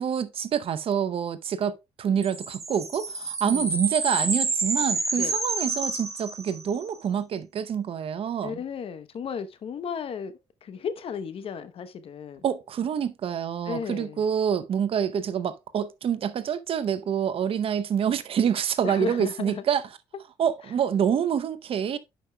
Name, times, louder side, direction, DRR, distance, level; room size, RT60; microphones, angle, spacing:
voice 1, 0.0-8.6 12.4-19.9 20.4-22.0, right 8 dB, 60° right, 0.7 m, -27 dB
sound 1, 2.2-6.8, right 3 dB, 30° right, 1.6 m, -29 dB
voice 2, 8.4-10.3 10.6-12.4 13.7-14.2 18.8-19.5, left 7 dB, 60° left, 0.8 m, -34 dB
11.0 x 5.2 x 2.2 m
supercardioid pair, 65°, 11 cm